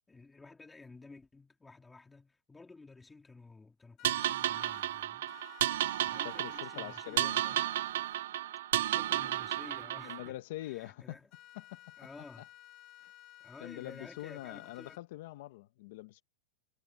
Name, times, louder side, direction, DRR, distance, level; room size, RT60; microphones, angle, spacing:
voice 1, 0.1-5.7 6.0-7.7 8.7-11.3 12.0-12.5 13.4-15.0, left 3 dB, 5° left, 2.5 m, -53 dB
sound 1, 4.0-4.8 5.3-7.5 11.3-15.0, left 15 dB, 25° left, 7.7 m, -55 dB
sound 2, 4.0-10.3, right 13 dB, 60° right, 0.6 m, -33 dB
voice 2, 6.2-7.4 10.0-11.2 11.7-11.9 12.4-12.5 13.0-13.1 13.6-16.2, left 16 dB, 45° left, 0.9 m, -44 dB
supercardioid pair, 175°, 0 cm